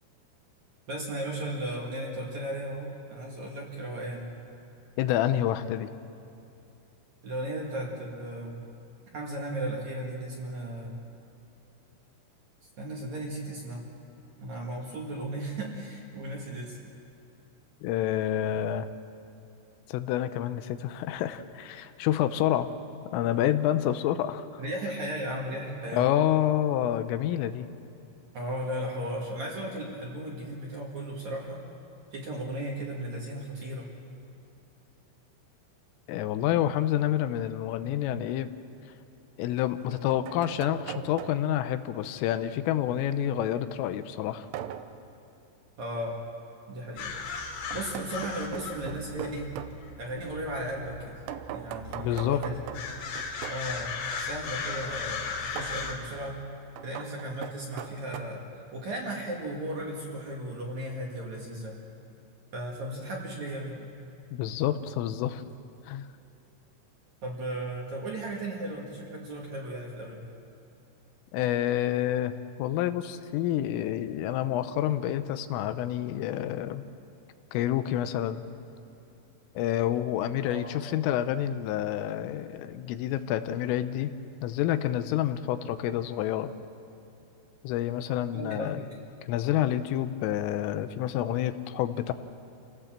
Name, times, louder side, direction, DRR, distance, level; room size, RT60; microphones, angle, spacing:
voice 1, 0.9-4.3 7.2-8.6 9.1-11.0 12.8-13.9 14.4-16.8 24.6-26.1 28.3-31.6 32.1-33.9 45.8-46.2 46.7-47.1 47.7-49.6 50.0-51.2 51.5-52.6 53.5-56.4 56.8-58.4 58.7-61.7 62.5-63.8 67.2-70.2 80.5-80.8 88.3-88.9, right 1 dB, 50° right, -2 dB, 2.6 m, -35 dB
voice 2, 5.0-5.9 17.8-18.9 19.9-22.7 23.1-24.6 25.9-27.7 36.1-38.5 39.4-44.5 52.0-52.4 64.3-65.4 65.9-66.1 71.3-72.3 72.6-76.8 77.5-78.4 79.6-84.1 84.4-86.5 87.6-88.8 89.2-92.1, left 12 dB, 90° left, 11 dB, 3.4 m, -28 dB
sound 1, 38.3-38.4 39.6-41.6 44.5-45.0 47.7-49.8 51.3-53.7 55.6-55.8 56.8-58.2, right 10 dB, 80° right, 2.5 m, -40 dB
sound 2, 47.0-55.9, left 5 dB, 65° left, 4.6 m, -37 dB
28.0 x 17.0 x 7.5 m, 2.8 s
omnidirectional pair, 5.7 m